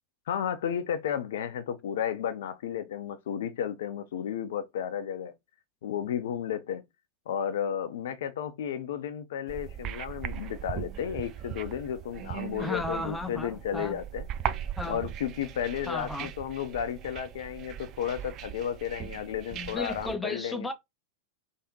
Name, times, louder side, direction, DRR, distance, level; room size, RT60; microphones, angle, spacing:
voice 1, 0.3-5.3 5.8-6.8 7.3-14.3 14.8-20.7, left 9 dB, 55° left, 0.5 m, -33 dB
sound 1, 9.5-20.2, right 10 dB, 35° right, 0.4 m, -39 dB
voice 2, 12.6-14.0 14.8-15.0 15.9-16.3 19.5-20.7, left 2 dB, 5° left, 0.6 m, -34 dB
3.4 x 2.8 x 2.8 m
figure-of-eight pair, 90°, 0 cm